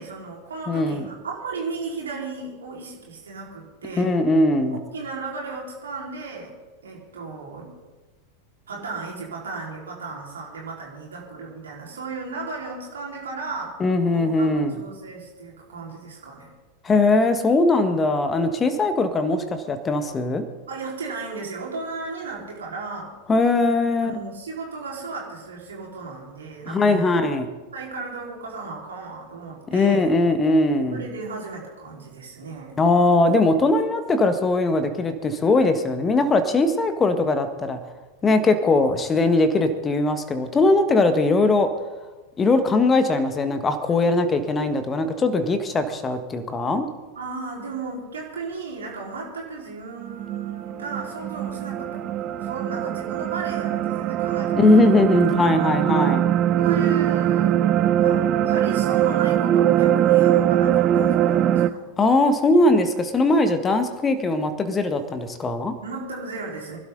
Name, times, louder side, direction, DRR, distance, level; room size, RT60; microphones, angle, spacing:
voice 1, 0.0-4.2 4.9-6.5 6.8-7.7 8.7-13.8 14.1-16.5 20.7-23.1 24.0-27.0 27.7-30.1 30.9-32.7 47.1-54.8 56.4-57.7 58.0-61.9 65.8-66.8, right 4 dB, 70° right, -2 dB, 4.7 m, -35 dB
voice 2, 0.7-1.0 4.0-4.8 13.8-14.7 16.8-20.4 23.3-24.1 26.7-27.5 29.7-31.0 32.8-37.8 38.2-41.7 42.4-46.9 54.5-56.2 62.0-65.7, left 2 dB, 20° left, 9 dB, 1.6 m, -20 dB
sound 1, 50.0-61.7, right 11 dB, 35° right, 0.6 m, -21 dB
24.5 x 12.0 x 4.0 m, 1.2 s
figure-of-eight pair, 90°, 0 cm